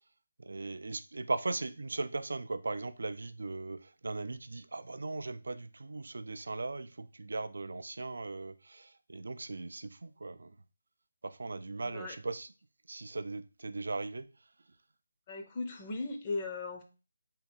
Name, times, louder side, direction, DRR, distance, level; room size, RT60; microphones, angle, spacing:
voice 1, 0.4-10.5 11.2-12.5 12.9-14.3, right 3 dB, 70° right, 0.3 m, -38 dB
voice 2, 11.8-12.2 15.3-16.8, left 3 dB, 25° left, 0.6 m, -37 dB
3.6 x 2.3 x 4.3 m
figure-of-eight pair, 165°, 0 cm